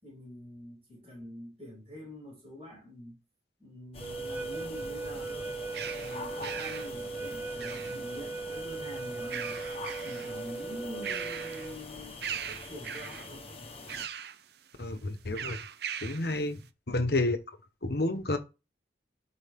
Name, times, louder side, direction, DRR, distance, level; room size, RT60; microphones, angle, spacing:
voice 1, 0.0-3.2 3.6-5.5 5.9-9.6 10.0-12.2 12.5-13.4 16.5-16.7, left 1 dB, 35° right, 5.6 m, -45 dB
sound 1, 3.9-14.1, left 2 dB, 30° left, 1.2 m, -44 dB
sound 2, 4.0-11.8, right 4 dB, 10° right, 0.4 m, -38 dB
sound 3, 5.2-8.3 9.1-10.4 10.8-11.8 12.2-13.3 13.9-14.4 15.3-16.3, right 8 dB, 60° right, 0.6 m, -39 dB
voice 2, 14.8-15.6 16.0-16.6 16.9-17.4 17.8-18.4, left 2 dB, 60° left, 1.1 m, -29 dB
11.0 x 4.7 x 3.6 m
head